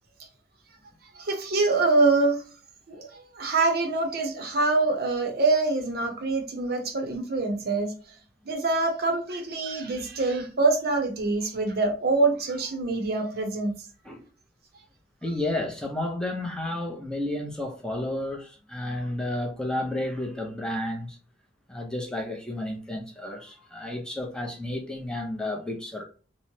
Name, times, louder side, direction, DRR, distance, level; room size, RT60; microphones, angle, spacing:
voice 1, 1.1-2.4 2.9-8.1 8.4-13.8, right 3 dB, 60° right, 0.7 m, -25 dB
voice 2, 15.2-21.2 21.7-26.0, left 1 dB, 5° left, 0.5 m, -31 dB
2.9 x 2.1 x 2.7 m
head